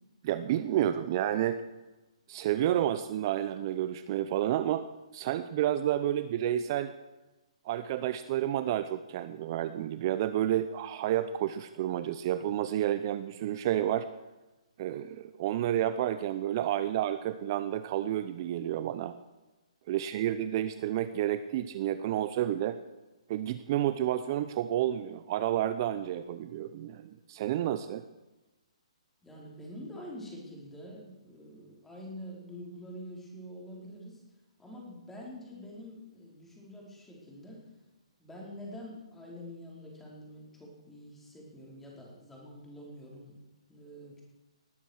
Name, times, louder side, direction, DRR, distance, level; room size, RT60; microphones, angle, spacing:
voice 1, 0.2-1.6 2.3-4.9 5.1-6.9 7.6-14.1 14.8-19.2 19.9-22.8 23.3-28.0, right 12 dB, 40° right, 12 dB, 0.7 m, -30 dB
voice 2, 29.2-34.2 34.6-37.6 38.2-43.4 43.7-44.2, equal, 5° left, -3 dB, 4.7 m, -46 dB
19.5 x 10.0 x 6.5 m, 1.1 s
hypercardioid pair, 145°, 3 cm